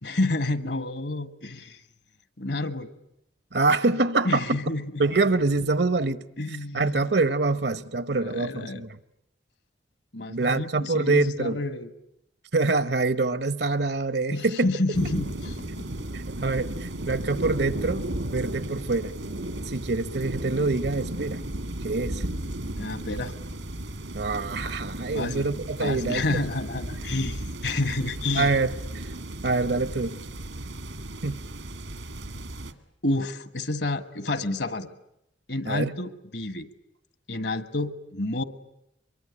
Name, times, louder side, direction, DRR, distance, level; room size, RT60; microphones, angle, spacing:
voice 1, 0.0-1.8 2.4-2.9 4.2-5.0 6.4-7.1 8.1-8.8 10.1-11.9 14.3-15.8 22.8-23.3 25.1-25.5 25.8-28.5 33.0-34.9 35.5-36.7 37.3-38.4, left 2 dB, 65° left, 1.5 m, -29 dB
voice 2, 3.5-4.4 5.0-6.2 6.7-8.9 10.3-11.5 12.5-14.7 16.1-19.1 19.6-21.4 21.8-22.2 24.1-26.4 28.4-28.7 29.4-30.2 31.2-31.4 35.7-35.9, right 3 dB, 60° right, 1.0 m, -25 dB
sound 1, 14.9-32.7, right 1 dB, 80° right, 2.0 m, -35 dB
24.5 x 23.0 x 9.9 m
head